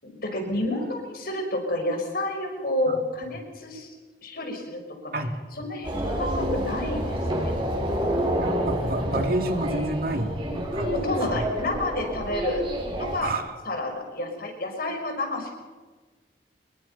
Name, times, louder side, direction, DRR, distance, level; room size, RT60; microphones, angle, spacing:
voice 1, 0.0-3.9 4.2-5.1 5.5-7.5 10.8-12.7 13.0-13.3 13.6-15.5, left 1 dB, 55° left, 3 dB, 5.6 m, -30 dB
sound 1, 5.8-13.2, equal, 30° right, 7.6 m, -28 dB
voice 2, 8.4-10.4 10.7-11.1 13.2-13.4, right 1 dB, 55° right, 5 dB, 2.5 m, -29 dB
26.0 x 22.5 x 5.6 m, 1.3 s
head